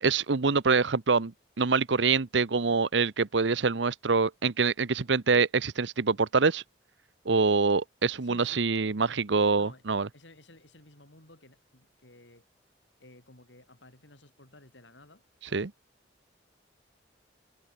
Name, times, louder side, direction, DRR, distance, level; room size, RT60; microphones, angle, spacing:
voice 1, 0.0-6.6 7.3-10.1 15.5-15.7, right 4 dB, 75° right, 0.9 m, -25 dB
voice 2, 8.2-8.7 9.6-9.9 10.1-12.5 13.0-15.7, left 1 dB, 75° left, 5.4 m, -55 dB
head